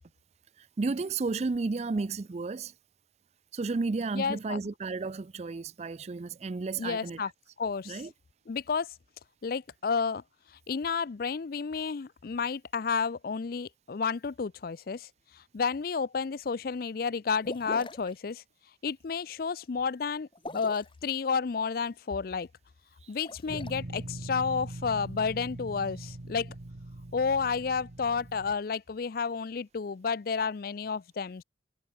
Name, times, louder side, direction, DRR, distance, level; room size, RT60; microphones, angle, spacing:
voice 1, 0.6-2.7 3.5-7.2 7.9-8.1 23.0-23.1, right 3 dB, 35° right, 0.4 m, -32 dB
voice 2, 4.1-4.6 6.8-7.3 7.6-8.0 8.5-8.9 9.4-10.2 10.7-18.4 18.8-20.3 20.5-22.5 23.1-26.5 27.1-31.4, left 5 dB, 50° left, 0.4 m, -31 dB
sound 1, 17.4-18.1 20.3-21.0 23.1-23.7, left 1 dB, 30° left, 2.5 m, -42 dB
sound 2, 23.5-28.5, right 1 dB, 55° right, 1.1 m, -42 dB
head